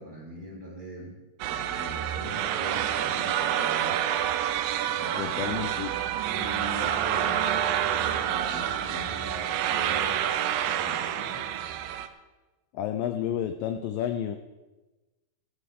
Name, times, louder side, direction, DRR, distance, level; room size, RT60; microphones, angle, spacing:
voice 1, 0.0-4.0 4.9-5.6 6.3-11.6, equal, 5° right, -6 dB, 3.3 m, -41 dB
sound 1, 1.4-12.1, right 10 dB, 80° right, 2.1 m, -28 dB
voice 2, 5.2-5.9 12.7-14.4, left 10 dB, 90° left, 8 dB, 1.9 m, -30 dB
15.0 x 13.5 x 3.6 m, 1.2 s
omnidirectional pair, 4.7 m